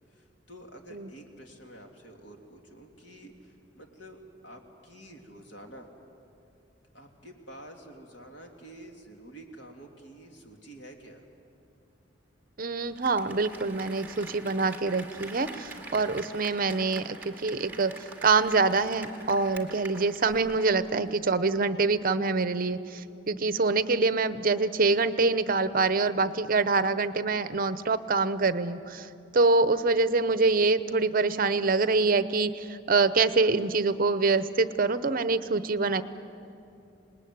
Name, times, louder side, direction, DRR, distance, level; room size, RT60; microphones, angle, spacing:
voice 1, 0.1-5.9 6.9-11.2, right 1 dB, 70° left, 2 dB, 3.1 m, -49 dB
voice 2, 12.6-36.0, right 3 dB, 50° right, 13 dB, 0.8 m, -25 dB
Applause, 12.8-21.0 21.3-21.4, right 3 dB, 10° right, 2.2 m, -45 dB
27.0 x 20.0 x 9.5 m, 2.7 s
head